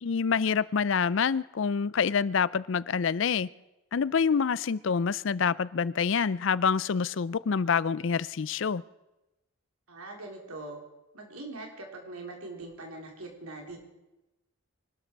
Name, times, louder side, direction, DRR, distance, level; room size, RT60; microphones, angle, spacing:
voice 1, 0.0-3.5 3.9-8.8, left 6 dB, 60° left, 20 dB, 0.4 m, -27 dB
voice 2, 9.9-10.8 11.1-13.8, right 2 dB, 90° right, 1 dB, 3.8 m, -42 dB
24.5 x 12.5 x 4.6 m, 0.99 s
head